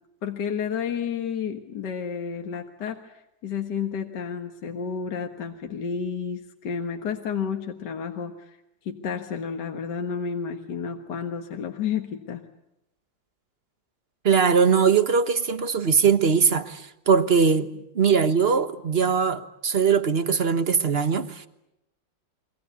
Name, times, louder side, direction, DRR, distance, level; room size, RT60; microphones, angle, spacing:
voice 1, 0.2-8.6 8.8-12.4, left 7 dB, 65° left, 2.1 m, -31 dB
voice 2, 14.2-17.7 17.9-21.5, right 6 dB, 35° right, 1.3 m, -21 dB
29.5 x 23.0 x 8.2 m
omnidirectional pair, 2.0 m